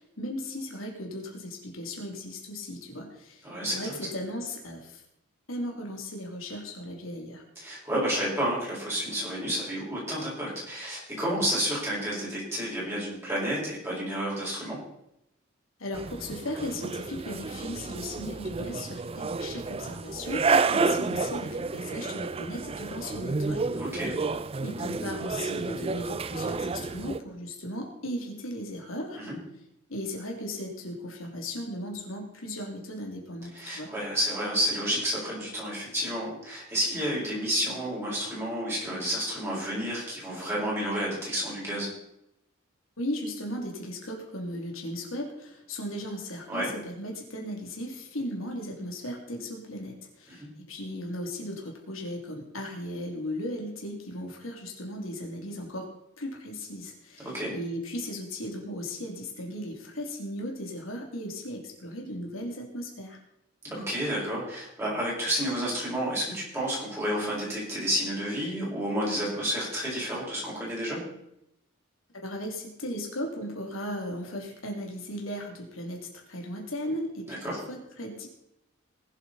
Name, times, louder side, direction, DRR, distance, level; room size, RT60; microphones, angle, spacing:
voice 1, 0.0-5.0 5.5-7.4 15.8-24.0 24.6-29.2 29.9-33.9 43.0-55.9 56.2-63.2 72.2-78.3, left 1 dB, 90° left, 1 dB, 2.8 m, -36 dB
voice 2, 3.4-3.9 7.6-14.8 23.8-24.1 29.2-29.4 33.5-41.9 46.5-46.7 50.3-50.5 57.2-57.5 63.6-71.0 77.3-77.6, equal, 15° right, -6 dB, 5.7 m, -30 dB
sound 1, 15.9-27.2, right 4 dB, 30° right, 0.4 m, -30 dB
20.0 x 8.0 x 4.2 m, 0.82 s
head